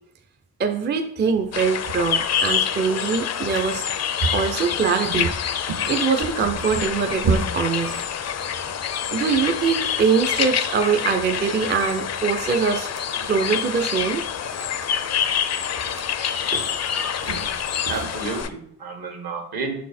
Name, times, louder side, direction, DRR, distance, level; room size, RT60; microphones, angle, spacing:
voice 1, 0.6-3.8 4.3-5.3 5.9-7.9 9.1-12.9 13.3-14.2, right 6 dB, 30° right, 5 dB, 0.4 m, -23 dB
sound 1, 1.3-18.4, right 4 dB, 55° right, 0.8 m, -34 dB
sound 2, 1.5-18.5, left 8 dB, 45° left, 0.4 m, -26 dB
voice 2, 17.9-19.7, right 4 dB, 70° right, 3 dB, 1.7 m, -31 dB
6.5 x 4.1 x 4.2 m, 0.76 s
wide cardioid pair, 175°, 38 cm